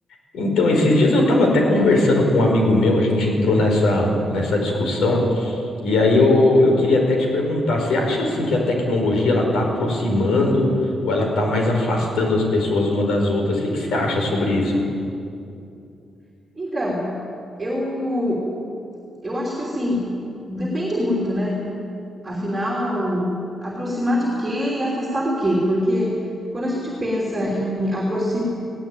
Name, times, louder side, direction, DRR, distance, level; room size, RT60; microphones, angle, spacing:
voice 1, 0.3-10.7 11.0-14.8, left 2 dB, 80° left, 2 dB, 5.0 m, -19 dB
voice 2, 16.5-17.1 17.6-18.4 19.2-20.1 20.5-21.6 22.2-23.3 23.6-26.2 26.5-28.4, equal, 10° right, -4 dB, 3.2 m, -24 dB
19.5 x 17.5 x 9.3 m, 2.6 s
wide cardioid pair, 175°, 0 cm